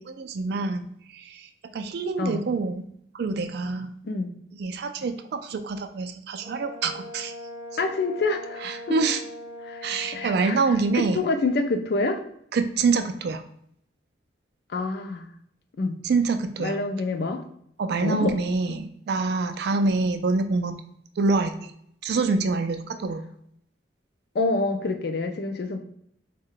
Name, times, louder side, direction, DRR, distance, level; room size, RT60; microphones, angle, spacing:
voice 1, 0.0-3.9 4.6-7.3 8.6-9.2 9.8-11.2 12.5-13.4 16.0-16.8 17.8-20.8 21.2-21.7 22.0-23.2, right 4 dB, 55° right, 8 dB, 0.3 m, -26 dB
Brass instrument, 6.4-10.5, left 2 dB, 15° right, 0.6 m, -40 dB
voice 2, 7.8-8.8 9.7-9.8 10.1-10.6 10.9-12.2 14.7-15.3 15.8-16.0 16.6-17.4 18.0-18.4 24.3-25.8, left 3 dB, 55° left, 6 dB, 0.4 m, -26 dB
3.5 x 2.1 x 3.7 m, 0.69 s
head